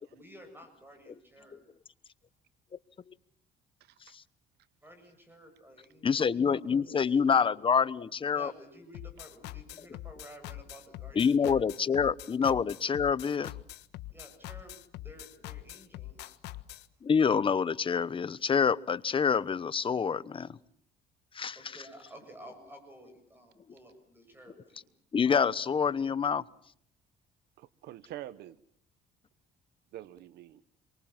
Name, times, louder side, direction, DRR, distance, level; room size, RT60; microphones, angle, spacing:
voice 1, 0.1-1.6 4.8-6.6 6.9-7.2 8.3-11.7 14.1-16.4 21.5-24.9, right 1 dB, 10° right, 7.5 m, -53 dB
voice 2, 3.8-4.1 27.6-28.6 29.9-30.6, right 13 dB, 80° right, 1.1 m, -46 dB
voice 3, 6.0-8.5 11.1-13.5 17.0-20.6 21.3-21.8 25.1-26.4, left 6 dB, 30° left, 1.0 m, -27 dB
sound 1, 8.9-16.9, left 15 dB, 80° left, 1.4 m, -43 dB
29.5 x 24.0 x 7.4 m
cardioid pair, 110°, 17 cm